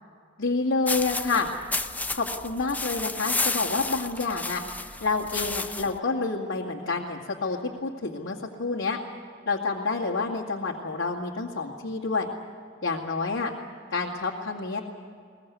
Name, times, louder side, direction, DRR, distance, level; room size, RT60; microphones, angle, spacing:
voice 1, 0.4-1.5 2.1-4.6 5.0-9.0 9.5-12.3 12.8-13.5 13.9-14.8, left 3 dB, 80° left, -4 dB, 2.3 m, -28 dB
sound 1, 0.9-6.0, left 3 dB, 10° left, 0.6 m, -31 dB
22.0 x 21.0 x 8.2 m, 2.2 s
head